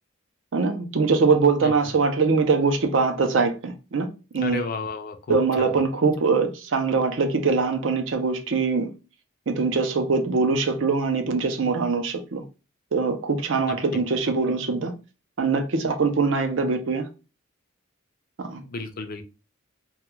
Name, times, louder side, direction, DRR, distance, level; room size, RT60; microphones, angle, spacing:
voice 1, 0.5-4.6 5.3-8.9 9.5-12.4 12.9-14.9 15.4-17.1 18.4-18.6, right 4 dB, 65° right, 0.5 m, -23 dB
voice 2, 4.4-5.7 13.7-13.8 18.6-19.2, left 4 dB, 45° left, 0.4 m, -33 dB
2.2 x 2.2 x 3.0 m
head